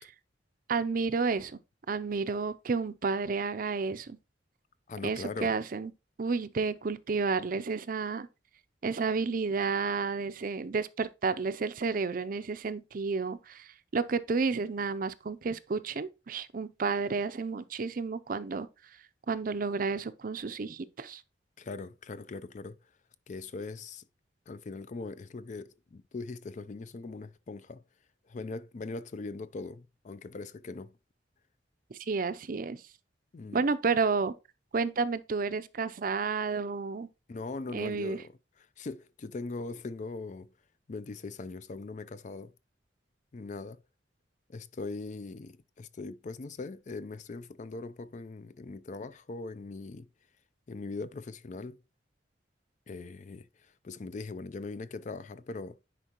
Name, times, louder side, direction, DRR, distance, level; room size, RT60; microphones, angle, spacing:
voice 1, 0.7-1.6 1.9-4.2 5.0-5.9 6.2-8.3 8.8-18.7 19.3-21.2 31.9-32.8 33.5-34.3 34.7-37.1 37.7-38.2, right 4 dB, 50° right, 0.5 m, -31 dB
voice 2, 4.9-5.5 21.6-22.8 23.3-24.0 24.5-27.8 28.3-30.9 33.3-33.6 37.3-40.5 40.9-42.5 43.3-43.8 44.5-50.1 50.7-51.8 52.9-55.8, left 3 dB, 45° left, 0.4 m, -41 dB
10.0 x 4.6 x 2.9 m
head